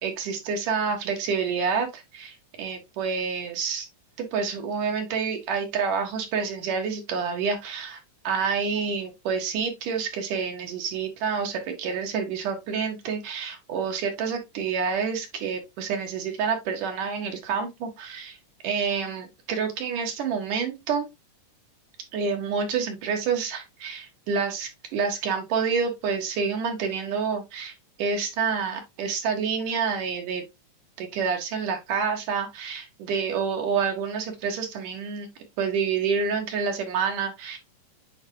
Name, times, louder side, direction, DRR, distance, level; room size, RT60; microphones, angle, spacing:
voice 1, 0.0-3.9 4.2-8.0 8.2-18.4 18.6-21.1 22.1-30.4 31.0-35.3 35.6-37.6, right 6 dB, 80° right, 3.4 m, -28 dB
8.7 x 4.7 x 3.1 m
omnidirectional pair, 3.7 m